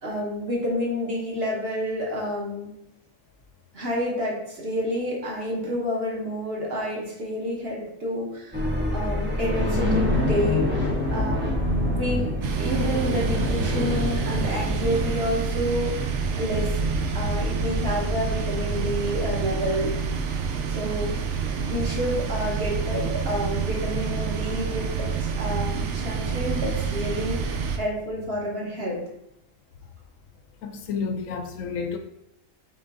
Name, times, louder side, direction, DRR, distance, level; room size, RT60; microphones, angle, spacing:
voice 1, 0.0-2.7 3.7-8.6 8.9-10.6 11.1-11.6 11.8-12.3 12.6-16.8 17.1-19.9 20.7-21.1 21.6-25.1 25.4-29.0, equal, 50° right, -4 dB, 1.4 m, -29 dB
sound 1, 8.5-21.0, left 1 dB, 10° right, 0.6 m, -27 dB
sound 2, 12.4-27.8, right 6 dB, 65° right, 0.9 m, -28 dB
voice 2, 30.6-32.0, left 5 dB, 80° left, 6 dB, 1.0 m, -30 dB
3.8 x 3.7 x 3.6 m, 0.80 s
omnidirectional pair, 1.4 m